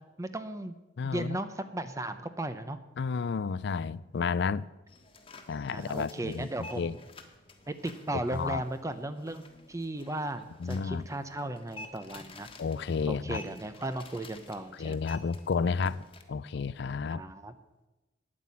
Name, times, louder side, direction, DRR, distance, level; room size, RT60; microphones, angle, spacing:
voice 1, 0.2-0.7 1.0-2.8 5.7-7.0 7.7-12.5 13.1-15.0 17.1-17.5, right 1 dB, 15° right, 0.6 m, -36 dB
voice 2, 1.0-1.4 3.0-4.7 5.5-6.5 6.8-6.9 8.3-8.6 10.6-11.0 12.6-13.4 14.8-17.2, left 5 dB, 65° left, 0.4 m, -31 dB
sound 1, 4.9-16.2, left 2 dB, 30° left, 1.4 m, -51 dB
9.6 x 9.3 x 8.5 m
head